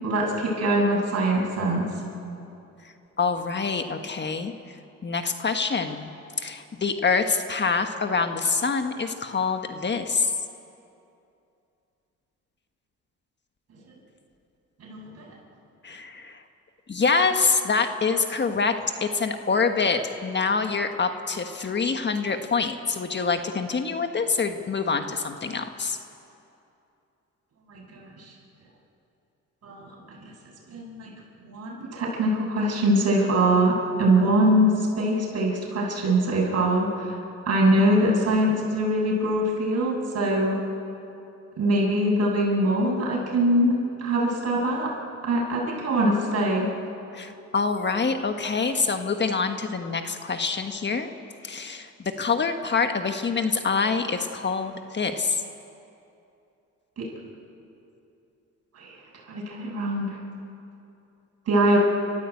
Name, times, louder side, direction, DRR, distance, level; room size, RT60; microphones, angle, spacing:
voice 1, 0.0-1.8 14.8-15.3 27.7-28.3 29.6-30.0 30.2-30.3 30.7-31.1 31.4-37.1 37.5-40.6 41.6-44.9 45.2-46.7 57.0-57.1 58.7-58.9 59.3-60.2 61.5-61.8, right 1 dB, 55° right, -3 dB, 8.0 m, -23 dB
voice 2, 3.2-4.8 5.0-6.1 6.4-10.3 15.8-16.4 16.9-26.0 47.1-51.1 51.4-55.4, left 4 dB, 35° left, 6 dB, 1.5 m, -26 dB
30.0 x 14.5 x 8.4 m, 2.7 s
cardioid pair, 90°, 30 cm